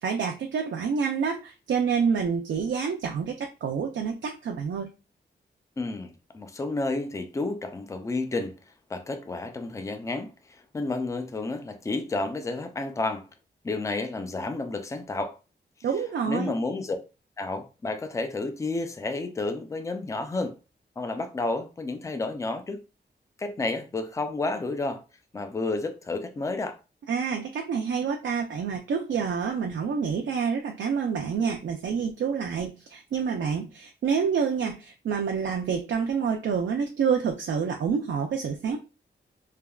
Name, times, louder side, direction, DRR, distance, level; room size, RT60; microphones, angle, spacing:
voice 1, 0.0-4.9 15.8-16.5 27.1-38.8, right 6 dB, 90° right, 0.4 m, -28 dB
voice 2, 5.8-8.5 8.9-13.3 13.6-15.4 16.3-17.0 17.4-20.5 21.0-22.8 23.4-25.0 25.3-26.8, left 3 dB, 15° left, 0.3 m, -31 dB
3.3 x 2.2 x 2.2 m
wide cardioid pair, 165°, 19 cm